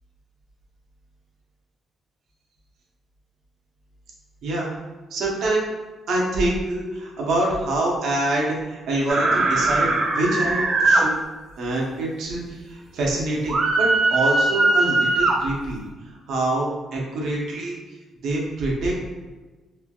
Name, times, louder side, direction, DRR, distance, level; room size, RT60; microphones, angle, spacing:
voice 1, 5.1-5.7 6.1-11.2 11.6-17.8 18.2-18.9, right 2 dB, 70° right, -2 dB, 0.7 m, -25 dB
sound 1, 9.1-11.0 13.5-15.4, right 2 dB, 45° right, 0.4 m, -20 dB
3.2 x 2.3 x 2.2 m, 1.2 s
cardioid pair, 170°, 0 cm